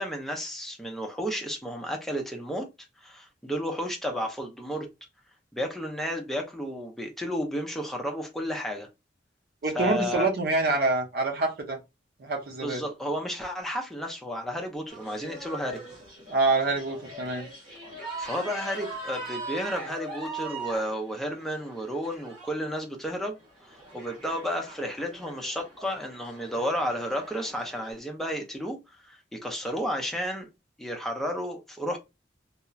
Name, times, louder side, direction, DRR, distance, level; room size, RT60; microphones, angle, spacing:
voice 1, 0.0-2.7 3.0-4.9 5.5-8.9 9.8-10.3 12.6-15.8 18.2-23.4 23.9-30.5 30.8-32.0, equal, ahead, 0.5 m, -32 dB
voice 2, 9.6-11.8 12.2-12.8 16.3-17.5, right 3 dB, 55° right, 0.6 m, -26 dB
sound 1, 14.9-22.5 23.3-27.9, right 2 dB, 30° right, 1.7 m, -41 dB
2.8 x 2.0 x 2.3 m
head